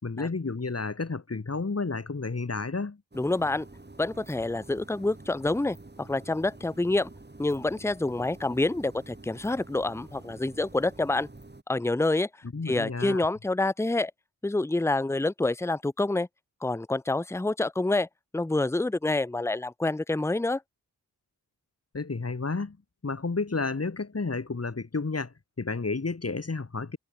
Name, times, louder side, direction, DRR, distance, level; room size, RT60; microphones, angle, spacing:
voice 1, 0.0-3.0 12.5-13.2 21.9-22.8 23.0-27.0, left 3 dB, 40° left, 3.0 m, -31 dB
voice 2, 3.1-3.7 4.0-7.1 7.4-11.3 11.7-12.3 12.7-14.1 14.4-16.3 16.6-18.1 18.3-20.6, left 2 dB, 5° left, 0.8 m, -27 dB
sound 1, 3.1-11.6, right 2 dB, 25° right, 5.0 m, -48 dB
cardioid pair, 50°, 37 cm